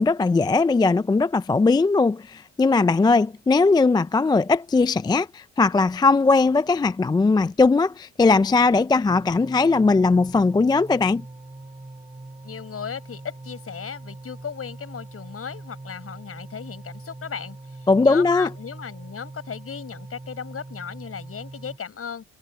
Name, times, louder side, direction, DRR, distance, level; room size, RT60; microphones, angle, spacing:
voice 1, 0.0-11.2 17.9-18.5, left 3 dB, 15° left, 0.4 m, -19 dB
sound 1, 9.1-21.8, right 2 dB, 15° right, 5.2 m, -42 dB
voice 2, 12.4-22.2, left 7 dB, 50° left, 7.2 m, -36 dB
cardioid pair, 90°, 30 cm